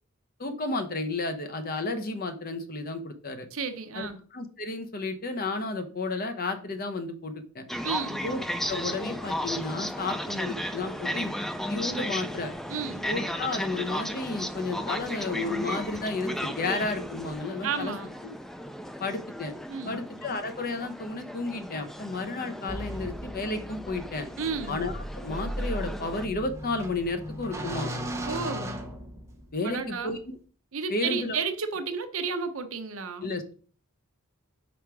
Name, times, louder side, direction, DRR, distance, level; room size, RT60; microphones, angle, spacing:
voice 1, 0.4-3.5 3.9-7.6 8.2-8.4 8.7-11.3 11.7-12.5 13.1-17.9 19.0-19.5 19.9-24.3 24.7-27.9 29.5-30.4 30.9-31.4 33.2-33.5, left 3 dB, 45° left, 0.8 m, -32 dB
voice 2, 3.5-4.2 7.8-8.2 12.7-13.1 17.6-18.1 19.7-20.0 24.4-24.8 28.2-28.8 29.6-30.2 30.7-33.3, right 5 dB, 65° right, 0.8 m, -32 dB
sound 1, 7.7-26.3, equal, ahead, 0.3 m, -35 dB
sound 2, 22.7-29.6, equal, 15° right, 0.8 m, -37 dB
5.1 x 4.7 x 4.6 m
head